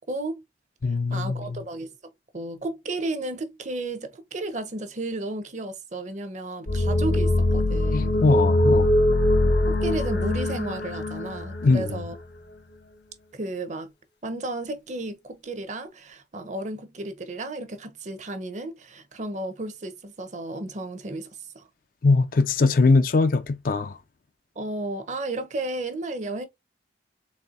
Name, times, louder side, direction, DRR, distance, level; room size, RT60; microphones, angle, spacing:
voice 1, 0.1-0.4 1.1-8.1 9.7-12.1 13.3-13.9 14.2-21.3 21.5-21.7 24.6-26.5, right 2 dB, 40° right, 0.7 m, -33 dB
voice 2, 0.8-1.6 7.9-8.9 11.6-12.0 22.0-24.0, left 3 dB, 50° left, 0.4 m, -21 dB
sound 1, 6.7-12.1, left 1 dB, 80° left, 0.8 m, -22 dB
4.2 x 3.4 x 2.4 m
head